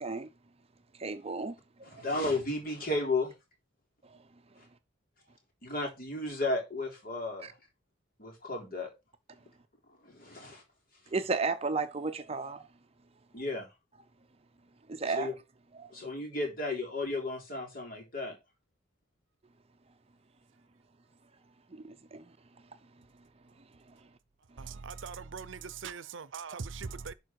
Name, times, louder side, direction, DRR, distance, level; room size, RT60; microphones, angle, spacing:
voice 1, 1.0-1.6 1.9-2.0 4.1-4.2 7.4-7.5 11.1-12.7 14.9-15.3 15.7-15.9 21.7-22.3, right 4 dB, 30° right, 0.6 m, -33 dB
voice 2, 1.9-3.3 5.6-7.5 8.2-8.9 10.1-10.6 13.3-13.7 15.1-15.3 15.9-18.4, left 2 dB, 45° left, 3.7 m, -33 dB
voice 3, 24.6-27.1, right 5 dB, 70° right, 0.6 m, -41 dB
11.5 x 4.7 x 4.6 m
head